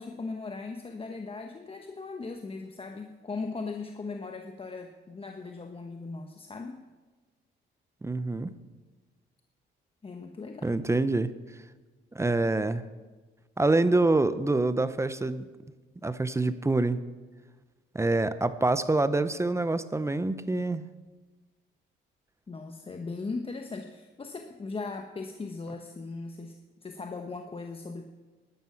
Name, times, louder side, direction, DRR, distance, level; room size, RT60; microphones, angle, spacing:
voice 1, 0.0-6.8 10.0-10.7 22.5-26.6 26.8-28.0, left 3 dB, 30° left, 4 dB, 1.0 m, -38 dB
voice 2, 8.0-8.5 10.6-11.3 12.1-12.8 13.6-15.5 16.0-17.0 17.9-20.8, right 2 dB, 15° right, 13 dB, 0.6 m, -26 dB
12.0 x 12.0 x 5.8 m, 1.3 s
cardioid pair, 90°, 20 cm